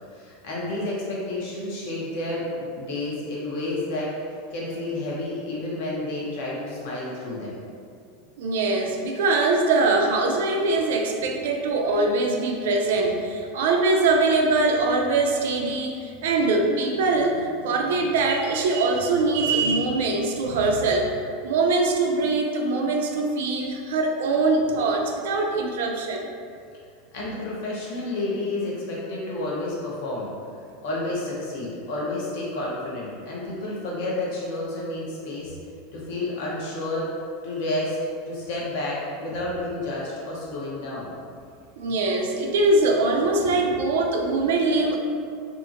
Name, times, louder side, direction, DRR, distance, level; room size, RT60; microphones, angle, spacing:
voice 1, 0.1-4.1 4.5-7.5 24.7-24.8 25.5-25.6 27.1-30.3 30.8-35.6 35.9-37.1 37.4-38.0 38.3-41.1, left 2 dB, 60° left, -5 dB, 0.7 m, -30 dB
voice 2, 8.4-21.1 21.4-26.3 41.8-45.0, right 3 dB, 80° right, 2 dB, 0.4 m, -22 dB
2.7 x 2.5 x 2.5 m, 2.3 s
supercardioid pair, 160°, 0 cm